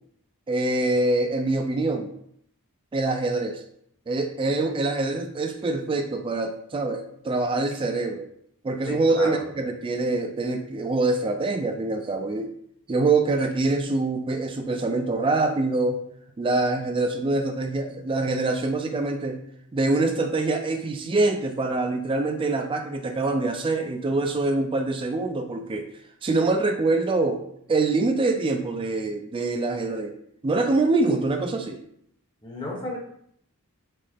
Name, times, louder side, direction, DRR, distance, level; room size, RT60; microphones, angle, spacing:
voice 1, 0.5-2.1 2.9-3.6 4.1-8.3 8.6-12.5 12.9-16.0 16.4-19.4 19.7-25.9 26.2-27.4 27.7-30.1 30.4-31.8, right 2 dB, 25° right, 5 dB, 0.3 m, -25 dB
voice 2, 8.8-9.4 32.4-33.0, left 1 dB, 20° left, -2 dB, 0.9 m, -33 dB
4.7 x 2.0 x 4.3 m, 0.68 s
head